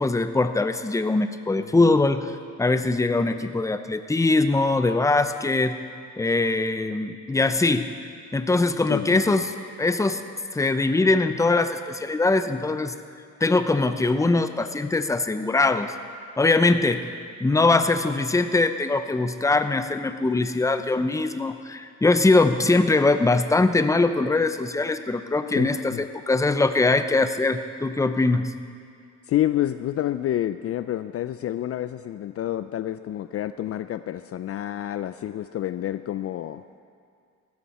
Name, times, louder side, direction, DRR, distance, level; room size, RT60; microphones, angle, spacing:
voice 1, 0.0-2.3 2.6-5.8 6.2-7.9 8.3-9.5 9.8-10.2 10.5-12.9 13.4-15.9 16.4-17.1 17.4-28.5, left 3 dB, 10° left, 10 dB, 0.6 m, -22 dB
voice 2, 1.6-2.0 8.9-9.5 25.5-26.0 29.3-36.6, left 12 dB, 50° left, 12 dB, 0.4 m, -29 dB
16.0 x 12.5 x 4.2 m, 2.2 s
cardioid pair, 90°, 30 cm